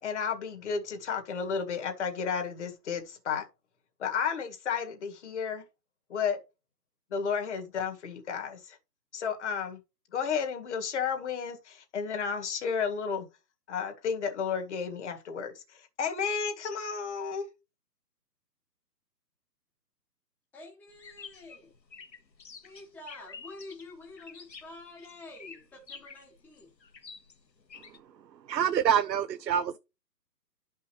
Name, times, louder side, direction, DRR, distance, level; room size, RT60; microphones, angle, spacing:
voice 1, 0.0-3.5 4.0-5.7 6.1-6.4 7.1-8.8 9.1-9.8 10.1-13.3 13.7-17.5, left 6 dB, 45° left, 2.0 m, -32 dB
voice 2, 20.5-21.7 22.6-26.7, left 2 dB, 5° left, 1.1 m, -48 dB
sound 1, 21.0-28.0, left 5 dB, 85° left, 1.5 m, -49 dB
voice 3, 28.5-29.8, right 8 dB, 80° right, 0.7 m, -26 dB
11.5 x 5.6 x 3.2 m
figure-of-eight pair, 145°, 50 cm